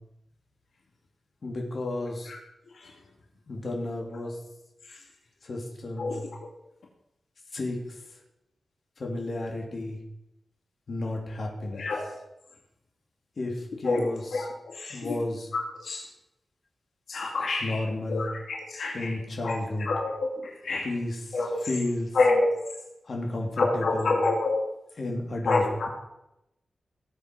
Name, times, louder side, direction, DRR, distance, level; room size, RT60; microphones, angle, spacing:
voice 1, 1.4-2.3 3.5-4.4 5.4-6.2 7.5-8.0 9.0-10.0 10.9-11.9 13.4-14.5 14.9-15.5 17.6-18.3 18.9-19.9 20.8-22.2 23.0-24.2 25.0-25.9, left 2 dB, 50° left, 0 dB, 3.3 m, -32 dB
voice 2, 11.7-12.1 13.8-14.1 14.3-15.0 15.8-16.0 17.1-17.8 18.1-19.1 19.4-19.6 19.9-20.3 20.6-20.9 21.3-21.7 22.1-22.6 23.6-24.6 25.5-25.9, left 3 dB, 75° left, -1 dB, 2.5 m, -27 dB
18.5 x 8.3 x 5.5 m, 0.86 s
wide cardioid pair, 135°, 0 cm